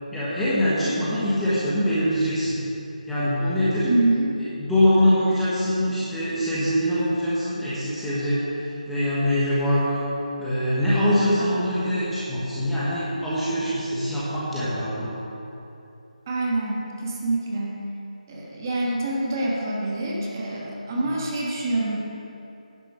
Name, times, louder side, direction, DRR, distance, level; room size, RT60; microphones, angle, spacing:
voice 1, 0.1-2.6 3.1-3.9 4.3-10.0 10.4-15.2 21.0-21.1, equal, ahead, -12 dB, 1.1 m, -23 dB
voice 2, 3.8-4.4 16.3-17.8 18.3-22.0, right 2 dB, 25° right, -3 dB, 1.3 m, -26 dB
10.5 x 6.8 x 5.6 m, 2.8 s
figure-of-eight pair, 170°, 4 cm